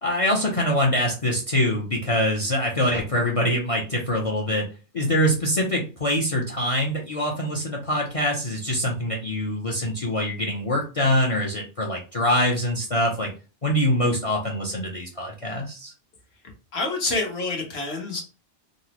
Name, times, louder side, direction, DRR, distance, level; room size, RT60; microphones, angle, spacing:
voice 1, 0.0-4.7 4.9-13.3 13.6-15.9, equal, 40° left, 1 dB, 0.5 m, -24 dB
voice 2, 16.7-18.2, left 3 dB, 65° left, 1 dB, 1.3 m, -27 dB
3.7 x 2.1 x 2.9 m, 0.32 s
omnidirectional pair, 1.2 m